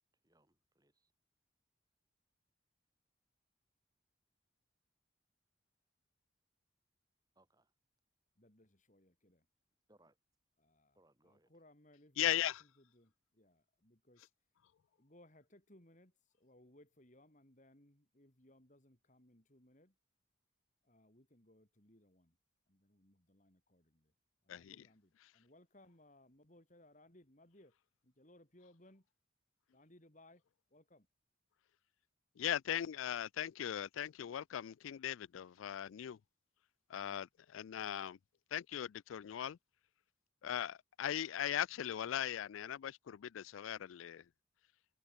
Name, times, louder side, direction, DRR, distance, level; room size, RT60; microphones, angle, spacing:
voice 1, 0.2-1.1 7.4-7.7 9.9-10.2 11.0-11.5, right 1 dB, 20° right, 5.1 m, -71 dB
voice 2, 8.4-9.5 10.6-14.3 15.0-20.0 20.8-22.4 22.7-24.1 24.4-27.8 28.0-29.1 29.7-30.4 30.7-31.1, left 1 dB, 40° left, 3.9 m, -65 dB
voice 3, 12.2-12.6 24.5-24.8 32.4-36.2 36.9-38.2 38.5-39.6 40.4-44.2, left 10 dB, 85° left, 0.4 m, -39 dB
head